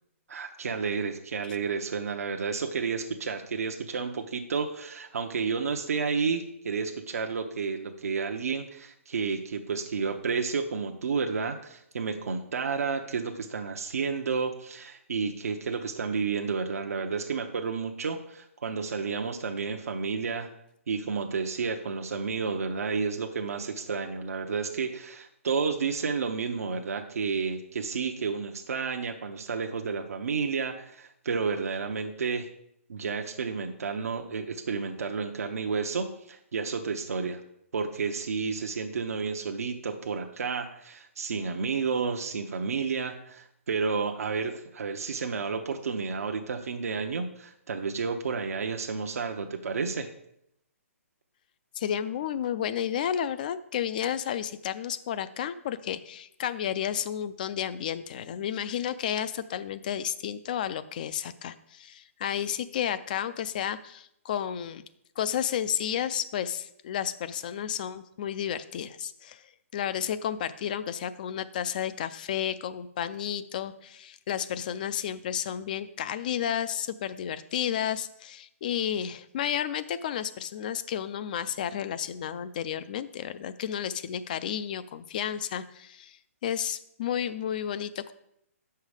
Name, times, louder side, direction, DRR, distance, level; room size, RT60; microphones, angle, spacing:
voice 1, 0.3-20.5 20.9-32.5 32.9-37.4 37.7-50.1, right 5 dB, 80° right, 4 dB, 0.8 m, -31 dB
voice 2, 51.8-64.8 65.2-69.4 69.7-86.2 86.4-88.1, left 9 dB, 35° left, 14 dB, 0.4 m, -32 dB
7.1 x 5.7 x 4.9 m, 0.75 s
hypercardioid pair, 165°, 8 cm